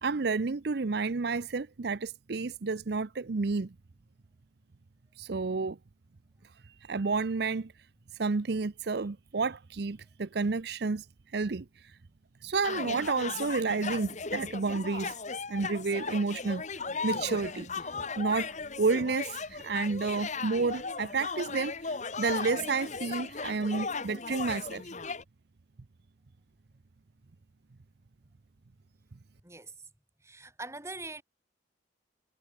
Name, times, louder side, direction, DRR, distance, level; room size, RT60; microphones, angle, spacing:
voice 1, 0.0-3.7 5.2-5.8 6.6-7.7 8.2-11.1 11.3-12.0 12.4-15.2 15.5-16.6 17.0-17.9 18.2-24.9, right 4 dB, 60° right, 0.6 m, -31 dB
sound 1, 12.6-25.2, left 4 dB, 40° left, 1.5 m, -37 dB
voice 2, 29.4-29.9 30.2-31.2, right 2 dB, 15° right, 7.7 m, -42 dB
head